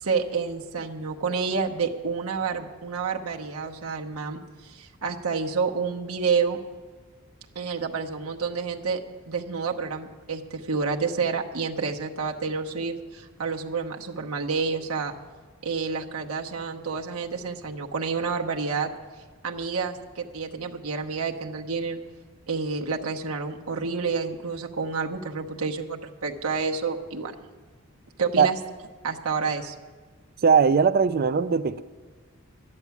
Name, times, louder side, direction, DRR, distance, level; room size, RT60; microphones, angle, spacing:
voice 1, 0.0-6.6 7.5-15.1 15.6-18.9 19.4-22.0 22.5-27.3 28.2-28.6 29.0-29.7, right 5 dB, 75° right, 2 dB, 0.9 m, -29 dB
voice 2, 30.4-31.8, right 6 dB, 45° right, 13 dB, 0.3 m, -19 dB
12.0 x 9.8 x 7.1 m, 1.4 s
head